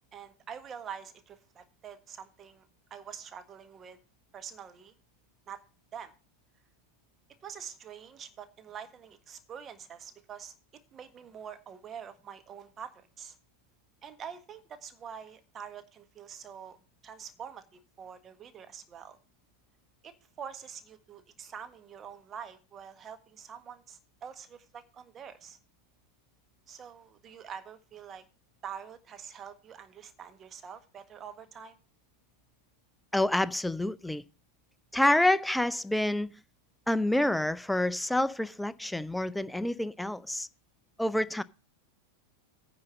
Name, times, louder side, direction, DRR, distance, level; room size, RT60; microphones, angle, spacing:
voice 1, 0.1-4.0 4.3-4.9 5.5-5.6 5.9-6.1 7.4-10.5 10.9-13.4 14.0-16.8 17.0-19.2 20.0-25.6 26.7-28.2 28.6-31.8, right 7 dB, 25° right, 1.6 m, -45 dB
voice 2, 33.1-34.2 34.9-36.3 36.9-40.5 41.0-41.4, left 1 dB, 5° left, 0.5 m, -27 dB
9.7 x 5.2 x 7.6 m
figure-of-eight pair, 90°, 0 cm